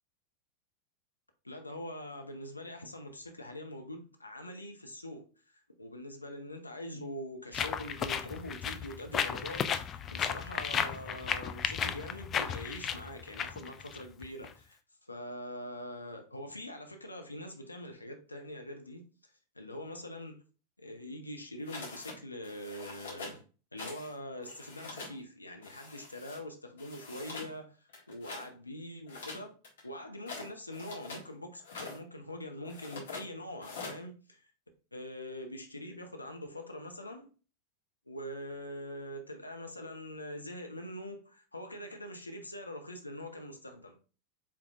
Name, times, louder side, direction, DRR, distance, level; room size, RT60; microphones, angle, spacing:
voice 1, 1.4-5.2 5.8-19.0 19.5-20.4 20.8-23.4 23.7-29.5 29.8-34.4 34.9-37.3 38.1-43.9, left 1 dB, 85° left, 0.6 m, -43 dB
sound 1, 7.5-14.5, left 7 dB, 25° left, 0.3 m, -34 dB
sound 2, 21.7-22.2 22.4-23.4 23.8-24.1 24.4-25.2 25.6-26.4 26.8-27.5 27.9-28.5 29.1-31.3 31.6-32.0 32.6-33.3 33.6-34.0, left 3 dB, 65° left, 1.5 m, -44 dB
4.6 x 3.5 x 2.4 m
figure-of-eight pair, 90°, 0 cm